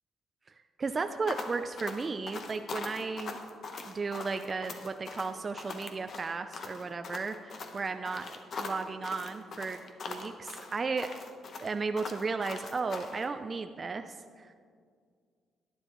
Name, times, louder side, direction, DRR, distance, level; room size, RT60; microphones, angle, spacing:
voice 1, 0.8-3.4 3.8-8.3 8.6-9.8 10.1-11.1 11.6-14.5, right 4 dB, 35° right, 8 dB, 0.3 m, -34 dB
sound 1, 1.3-13.2, left 4 dB, 55° left, 0.9 m, -41 dB
11.0 x 9.6 x 3.0 m, 2.1 s
cardioid pair, 90°, 0 cm